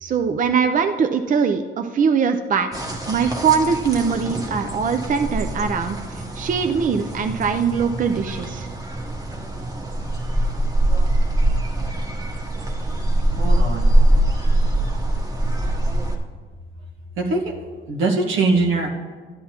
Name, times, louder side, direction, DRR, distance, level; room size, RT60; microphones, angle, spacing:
voice 1, 0.0-8.7, right 6 dB, 40° right, 7 dB, 0.6 m, -22 dB
sound 1, 2.7-16.2, right 1 dB, 20° right, 1.2 m, -23 dB
voice 2, 13.4-14.1 17.2-17.6 17.9-18.9, right 3 dB, 90° right, 0 dB, 1.5 m, -22 dB
12.5 x 9.8 x 2.9 m, 1.5 s
cardioid pair, 90°, 20 cm